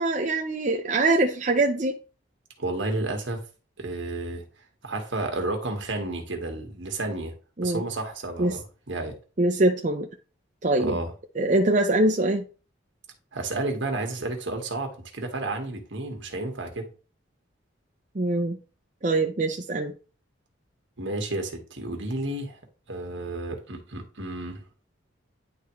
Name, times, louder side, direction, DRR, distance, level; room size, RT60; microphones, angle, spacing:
voice 1, 0.0-2.0 7.6-7.8 8.4-8.6 9.4-10.1 10.6-11.0 11.4-12.4 18.2-18.6 19.0-19.9, right 2 dB, 40° right, 0.5 m, -23 dB
voice 2, 2.6-3.4 3.8-4.4 4.8-7.3 7.6-9.2 10.8-11.1 13.3-16.9 21.0-22.6 22.9-24.6, right 2 dB, 70° right, 1.5 m, -31 dB
10.0 x 3.5 x 3.1 m
head